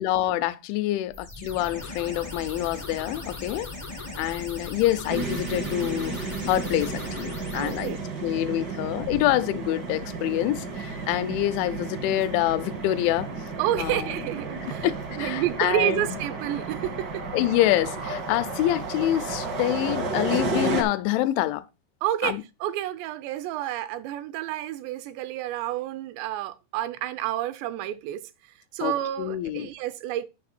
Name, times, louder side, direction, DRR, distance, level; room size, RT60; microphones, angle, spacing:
voice 1, 0.0-3.7 4.2-13.3 13.8-14.2 14.8-16.1 17.3-21.6 22.2-22.4 28.8-28.9 29.2-29.7, left 14 dB, 85° left, 3.1 m, -26 dB
sound 1, 1.1-7.9, left 2 dB, 30° left, 0.6 m, -38 dB
sound 2, 5.1-20.8, right 3 dB, 65° right, 1.1 m, -32 dB
voice 2, 7.5-8.0 13.6-17.2 22.0-28.2 28.7-30.3, right 13 dB, 85° right, 2.7 m, -29 dB
10.5 x 5.9 x 4.2 m
omnidirectional pair, 5.3 m